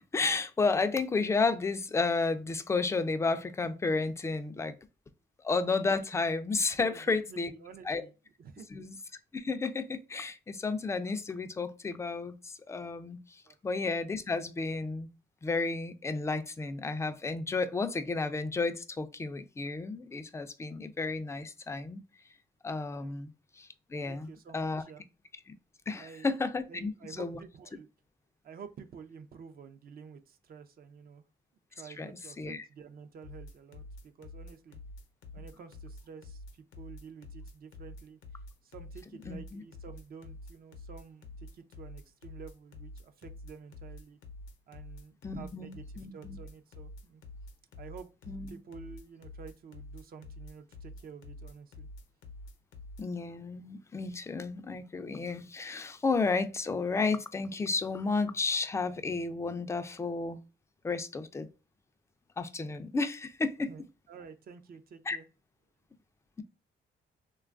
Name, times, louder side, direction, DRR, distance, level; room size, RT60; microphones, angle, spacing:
voice 1, 0.1-4.7 5.4-7.5 7.8-8.0 8.7-9.0 9.3-15.1 15.4-22.0 22.6-24.3 24.5-24.8 25.9-26.9 27.2-27.4 31.9-32.1 32.4-32.6 39.3-39.6 45.2-46.4 48.3-48.6 53.0-60.4 60.8-61.5 62.4-63.7 65.1-65.2, left 4 dB, 15° left, 0.3 m, -32 dB
voice 2, 6.8-8.1 8.4-8.7 13.4-13.6 22.9-23.1 24.0-25.0 26.0-26.3 26.7-27.9 28.4-31.2 31.7-34.8 35.3-44.2 44.7-45.8 46.1-47.2 47.8-51.9 63.7-65.3, right 6 dB, 50° right, 0.4 m, -50 dB
sound 1, 33.2-53.1, left 2 dB, 75° left, 0.6 m, -47 dB
3.0 x 2.3 x 2.4 m
cardioid pair, 90°, 20 cm